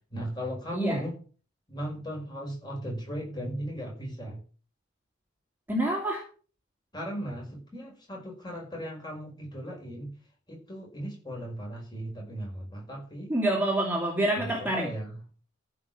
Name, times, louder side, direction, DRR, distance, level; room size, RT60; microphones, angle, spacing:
voice 1, 0.1-1.2 1.7-4.4 6.9-10.1 10.5-13.3 14.6-15.1, equal, 20° left, -1 dB, 5.8 m, -36 dB
voice 2, 5.7-6.2 13.3-14.9, right 1 dB, 10° right, -2 dB, 2.3 m, -27 dB
14.5 x 5.7 x 7.5 m, 0.40 s
head